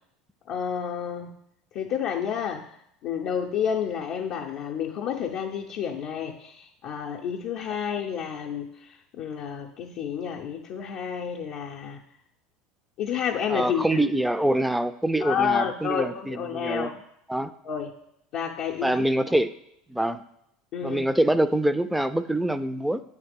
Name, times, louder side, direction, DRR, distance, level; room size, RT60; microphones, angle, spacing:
voice 1, 0.5-1.3 1.7-2.6 3.0-8.7 9.1-12.0 13.0-14.0 15.2-16.9 17.6-17.9 18.3-19.0 20.7-21.0, left 8 dB, 55° left, -2 dB, 0.5 m, -30 dB
voice 2, 13.5-16.9 17.3-17.5 18.8-19.5 19.9-20.2 20.8-23.0, right 1 dB, 5° right, 13 dB, 0.3 m, -25 dB
9.0 x 3.2 x 3.4 m, 0.76 s
hypercardioid pair, 75°, 0 cm